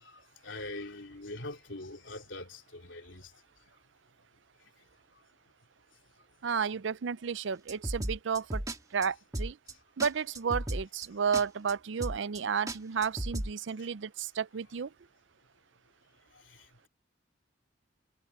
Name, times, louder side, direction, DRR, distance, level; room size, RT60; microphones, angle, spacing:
voice 1, 0.0-3.3 16.5-16.9, left 2 dB, 80° left, 3.3 m, -43 dB
voice 2, 6.4-8.6 8.9-9.6 10.0-14.9, right 6 dB, 70° right, 0.5 m, -32 dB
sound 1, 7.7-8.8 9.0-9.1 9.3-9.7 10.0-10.1 10.3-11.1 11.3-11.4 11.7-11.8 12.0-12.4 12.7-13.5, right 1 dB, 20° right, 1.7 m, -35 dB
head